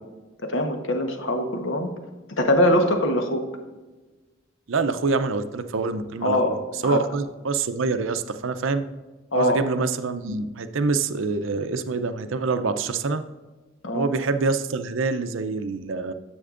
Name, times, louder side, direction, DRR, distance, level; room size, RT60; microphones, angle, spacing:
voice 1, 0.4-1.9 2.4-3.4 6.2-6.6 6.8-7.0 9.3-9.6 13.8-14.1, left 1 dB, 70° left, 5 dB, 1.2 m, -22 dB
voice 2, 4.7-8.9 9.3-13.2 13.9-16.1, right 4 dB, 70° right, 10 dB, 0.5 m, -26 dB
10.0 x 7.8 x 2.5 m, 1.2 s
head